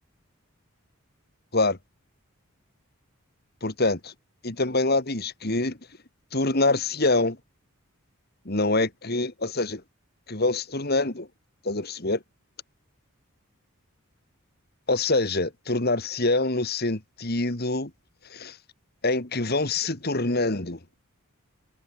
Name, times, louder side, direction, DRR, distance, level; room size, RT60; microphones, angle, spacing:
voice 1, 3.6-4.1 4.4-5.8 6.3-7.4 8.5-9.8 10.3-11.3 11.6-12.2 14.9-17.9 18.3-18.6 19.0-20.8, left 2 dB, 45° left, 2.2 m, -25 dB
head